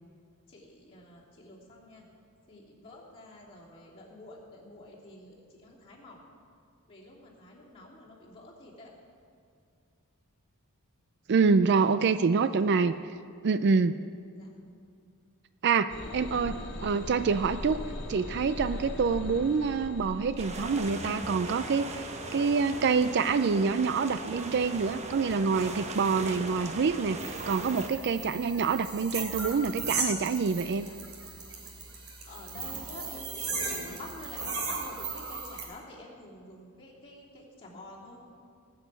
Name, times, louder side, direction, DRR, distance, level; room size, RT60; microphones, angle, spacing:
voice 1, 0.5-2.1 2.5-6.2 6.9-8.9 12.3-12.8 14.3-14.5 30.8-31.0 32.3-38.2, left 1 dB, 25° left, -6 dB, 3.1 m, -49 dB
voice 2, 11.3-12.9 13.4-14.0 15.6-17.8 18.1-30.9, right 5 dB, 50° right, 12 dB, 0.4 m, -26 dB
sound 1, 15.9-21.2, left 1 dB, 55° left, 1.8 m, -40 dB
sound 2, 20.4-27.9, right 2 dB, 30° right, 1.0 m, -39 dB
sound 3, 27.2-35.6, right 4 dB, 70° right, 3.0 m, -37 dB
19.0 x 6.5 x 8.2 m, 2.3 s
head